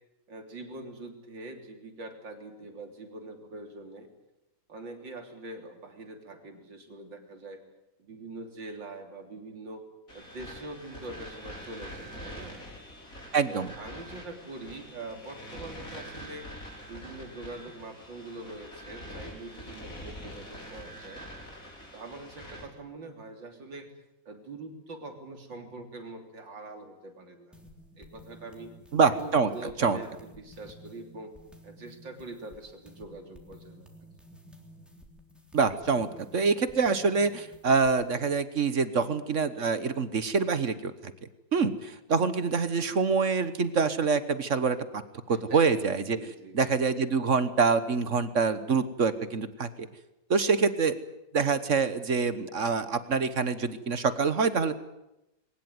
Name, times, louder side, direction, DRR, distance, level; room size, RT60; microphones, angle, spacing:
voice 1, 0.3-4.1 4.7-7.6 8.0-9.8 10.1-12.6 13.5-16.5 16.9-21.3 21.9-23.9 24.3-27.5 28.0-28.7 29.2-31.3 31.6-33.9 45.3-45.6 46.1-46.6, right 2 dB, 75° right, 5 dB, 3.9 m, -43 dB
sound 1, 10.1-22.7, equal, 45° left, 5.4 m, -45 dB
voice 2, 13.3-13.7 28.9-29.5 29.8-30.0 35.5-36.1 36.3-40.9 41.5-45.0 45.3-46.2 46.5-49.9 50.3-50.9 51.3-54.8, right 5 dB, 45° right, 12 dB, 1.4 m, -25 dB
sound 2, 27.5-38.2, equal, ahead, 3.4 m, -53 dB
21.5 x 19.5 x 9.5 m, 0.90 s
omnidirectional pair, 2.0 m